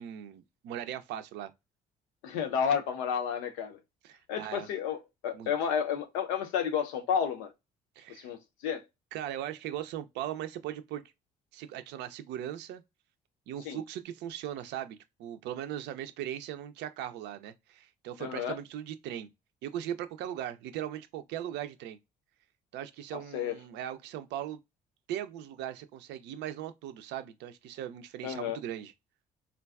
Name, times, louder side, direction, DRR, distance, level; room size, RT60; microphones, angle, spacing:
voice 1, 0.0-1.5 4.0-4.7 5.3-5.5 8.0-8.3 9.1-11.0 11.5-12.8 13.5-19.3 19.6-22.0 22.7-24.6 25.1-28.9, right 11 dB, 65° right, 0.5 m, -39 dB
voice 2, 2.2-3.8 4.3-7.5 8.1-8.8 13.6-13.8 18.2-18.6 23.1-23.6 28.2-28.6, left 7 dB, 75° left, 0.6 m, -31 dB
3.8 x 2.2 x 2.3 m
hypercardioid pair, 50°, 19 cm